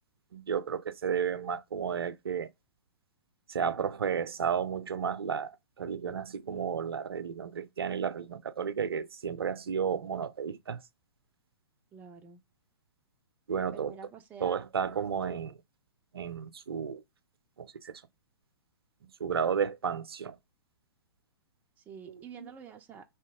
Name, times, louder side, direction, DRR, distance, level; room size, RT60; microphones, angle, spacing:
voice 1, 0.3-2.5 3.5-10.8 13.5-13.9 14.4-15.6 16.1-17.0 17.6-17.9 19.2-20.4 22.1-22.5, right 7 dB, 75° right, 0.5 m, -32 dB
voice 2, 11.9-12.4 13.7-14.6 21.8-23.0, right 7 dB, 15° right, 0.3 m, -48 dB
2.9 x 2.7 x 3.4 m
figure-of-eight pair, 115°, 13 cm